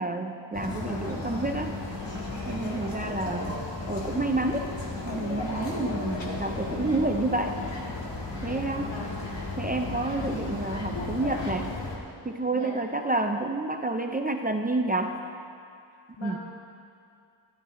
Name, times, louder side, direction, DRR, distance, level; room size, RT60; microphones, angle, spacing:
voice 1, 0.0-1.8 2.5-4.6 5.0-7.6 8.4-8.9 9.6-11.8 12.2-15.2 16.2-16.4, right 2 dB, 20° right, 4 dB, 0.4 m, -29 dB
sound 1, 0.5-12.0, left 2 dB, 65° left, 2.0 m, -34 dB
voice 2, 2.5-3.0 5.5-5.8 6.2-6.4 8.4-9.2 10.2-10.6 12.5-12.8 16.2-16.4, left 2 dB, 85° left, -5 dB, 2.7 m, -41 dB
13.0 x 12.0 x 3.8 m, 2.4 s
wide cardioid pair, 150°, 45 cm